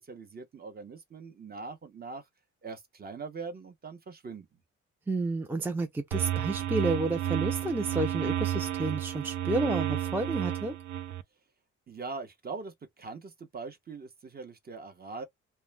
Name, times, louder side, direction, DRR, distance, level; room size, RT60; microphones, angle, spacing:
voice 1, 0.0-2.3 2.6-4.6 11.9-15.2, right 4 dB, 30° right, 0.8 m, -42 dB
voice 2, 5.1-10.8, right 2 dB, 5° right, 0.5 m, -31 dB
sound 1, 6.1-11.2, right 12 dB, 70° right, 0.5 m, -31 dB
2.3 x 2.1 x 3.2 m
cardioid pair, 90°, 30 cm